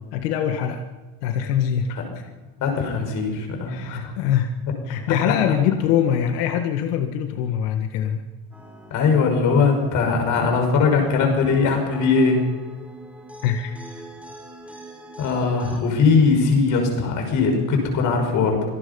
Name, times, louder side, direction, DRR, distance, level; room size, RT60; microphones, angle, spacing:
voice 1, 0.1-0.9 1.2-2.3 3.7-4.6 4.9-8.2 13.4-13.8, left 9 dB, 85° left, 6 dB, 1.9 m, -23 dB
voice 2, 2.6-4.1 5.3-5.4 8.9-12.4 15.2-18.6, left 4 dB, 40° left, 4 dB, 5.9 m, -20 dB
sound 1, 8.5-15.8, right 1 dB, 5° right, 4.4 m, -42 dB
26.0 x 19.0 x 5.5 m, 1.3 s
cardioid pair, 165°, 46 cm